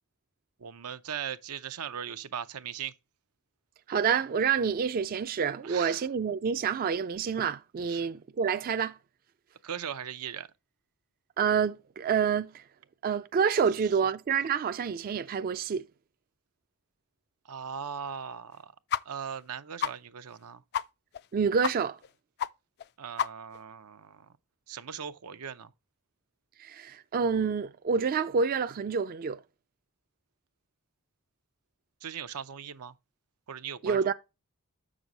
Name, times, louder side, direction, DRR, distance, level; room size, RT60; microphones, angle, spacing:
voice 1, 0.6-2.9 5.6-6.0 7.9-8.1 9.6-10.5 17.4-18.7 19.0-20.6 23.0-24.3 24.7-25.7 32.0-32.9 33.5-34.1, right 8 dB, 85° right, 0.6 m, -39 dB
voice 2, 3.9-9.0 11.4-12.6 13.0-15.8 21.3-22.0 26.6-29.4 33.8-34.1, right 6 dB, 40° right, 0.3 m, -28 dB
sound 1, 18.9-19.0 19.3-19.4 19.8-19.9 20.3-20.4 20.7-20.9 21.1-21.3 21.6-21.7 22.0-22.1 22.4-22.5 22.8-22.9 23.2-23.6, left 8 dB, 45° left, 0.3 m, -30 dB
7.3 x 6.2 x 3.9 m
head